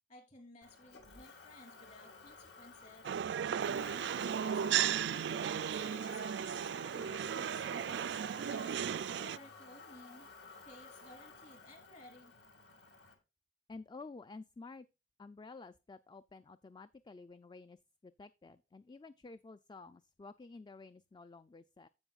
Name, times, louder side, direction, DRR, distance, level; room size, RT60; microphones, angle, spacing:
voice 1, 0.1-3.1 3.6-8.0 8.5-10.3 10.6-12.3, left 1 dB, 40° left, 3.1 m, -57 dB
Motor vehicle (road), 0.6-13.1, left 4 dB, 70° left, 2.2 m, -53 dB
sound 1, 3.0-9.4, right 9 dB, 65° right, 0.3 m, -35 dB
voice 2, 13.7-14.9 15.2-21.9, left 3 dB, 25° left, 0.3 m, -52 dB
15.0 x 5.3 x 2.4 m
head